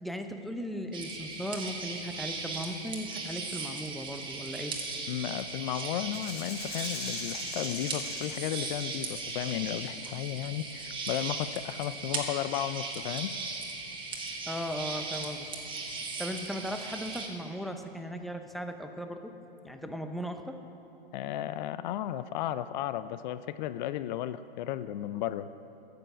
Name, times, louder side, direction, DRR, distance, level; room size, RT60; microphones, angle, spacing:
voice 1, 0.0-4.8 14.5-15.5 16.2-19.3 19.6-20.6, equal, ahead, 6 dB, 0.6 m, -37 dB
sound 1, 0.9-17.3, right 3 dB, 15° right, 1.6 m, -38 dB
voice 2, 5.1-13.4 19.8-19.9 21.1-25.5, left 12 dB, 50° left, 14 dB, 0.5 m, -34 dB
Rattle (instrument), 6.1-10.0, left 3 dB, 85° left, 3.3 m, -42 dB
14.5 x 7.8 x 7.6 m, 2.8 s
hypercardioid pair, 120°, 30 cm